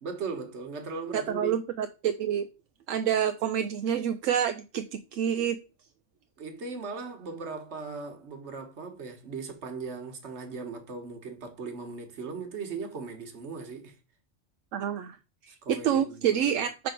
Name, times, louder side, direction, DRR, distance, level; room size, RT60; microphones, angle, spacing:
voice 1, 0.0-1.6 6.4-14.0 15.5-16.4, right 4 dB, 60° right, 1.5 m, -38 dB
voice 2, 1.1-2.4 2.9-5.6 14.7-15.2 15.7-16.9, right 9 dB, 80° right, 0.9 m, -27 dB
5.9 x 3.5 x 5.1 m
omnidirectional pair, 1.3 m